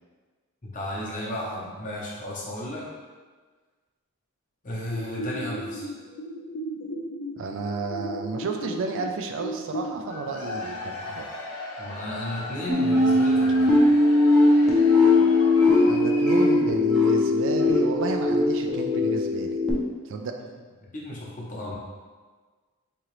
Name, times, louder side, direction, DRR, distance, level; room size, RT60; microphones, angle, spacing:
voice 1, 0.6-2.9 4.6-5.9 11.8-13.8 20.8-21.7, left 1 dB, 35° left, -4 dB, 0.8 m, -34 dB
sound 1, 4.9-9.9, equal, 65° left, 0.4 m, -35 dB
voice 2, 7.4-11.3 15.9-19.6 20.1-20.3, right 3 dB, 55° right, 4 dB, 0.3 m, -32 dB
Cheering / Crowd, 10.0-16.7, left 2 dB, 90° left, 0.8 m, -37 dB
sound 2, 12.7-19.7, left 2 dB, ahead, 0.5 m, -20 dB
3.7 x 3.0 x 3.1 m, 1.4 s
head